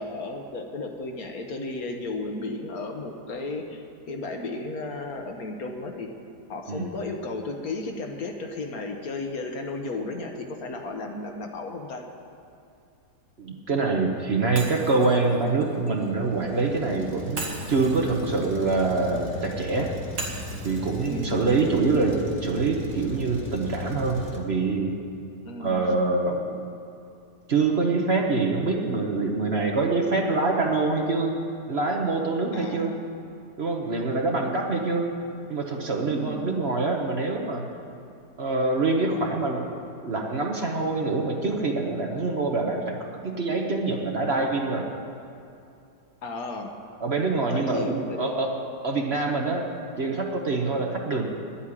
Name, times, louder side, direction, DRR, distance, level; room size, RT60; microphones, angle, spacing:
voice 1, 0.0-6.1 6.5-12.1 21.0-21.5 25.4-25.9 32.5-33.0 34.1-34.5 36.2-36.5 46.2-46.8 47.4-48.2 51.0-51.3, left 2 dB, 65° left, 3 dB, 1.6 m, -34 dB
voice 2, 13.4-19.9 20.6-24.9 25.6-26.5 27.5-31.3 31.7-32.9 33.6-35.0 35.5-37.6 38.4-39.7 40.0-44.9 47.0-48.5 48.8-49.6 50.0-51.3, right 3 dB, 45° right, 1 dB, 1.2 m, -25 dB
Shatter, 14.6-16.6 17.4-19.5 20.2-22.3, right 3 dB, 75° right, 2.1 m, -39 dB
Truck, 15.6-24.4, left 1 dB, 10° left, 1.4 m, -37 dB
10.5 x 8.6 x 9.9 m, 2.5 s
omnidirectional pair, 1.7 m